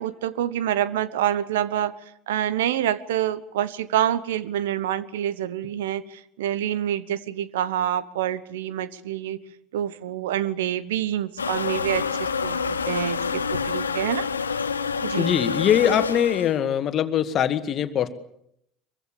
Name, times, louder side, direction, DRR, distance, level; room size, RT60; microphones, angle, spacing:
voice 1, 0.0-1.9 2.3-9.4 9.7-14.3 15.0-15.3, right 11 dB, 70° right, 17 dB, 1.1 m, -27 dB
sound 1, 11.4-16.6, left 5 dB, 85° left, 1.2 m, -27 dB
voice 2, 15.2-18.2, left 9 dB, 40° left, 11 dB, 2.0 m, -22 dB
24.0 x 23.5 x 7.0 m, 0.74 s
figure-of-eight pair, 65°, 0 cm